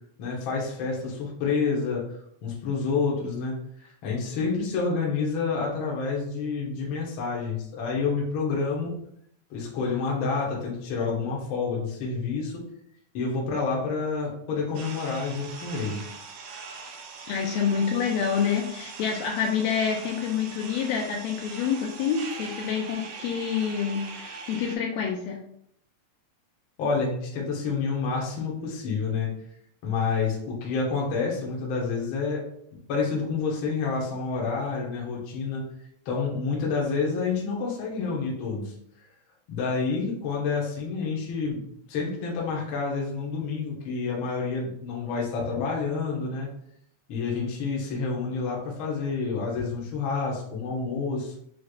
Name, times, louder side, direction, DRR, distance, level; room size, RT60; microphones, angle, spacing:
voice 1, 0.2-2.1 2.4-8.9 9.5-12.6 13.1-16.1 26.8-29.3 29.8-32.4 32.9-35.7 36.0-38.7 39.5-41.6 41.9-46.5 47.1-51.4, left 4 dB, 60° left, -3 dB, 1.5 m, -28 dB
sound 1, 14.7-24.8, right 5 dB, 75° right, 2.0 m, -41 dB
voice 2, 17.3-25.4, left 7 dB, 80° left, 1 dB, 1.7 m, -27 dB
6.2 x 3.2 x 2.3 m, 0.70 s
omnidirectional pair, 3.3 m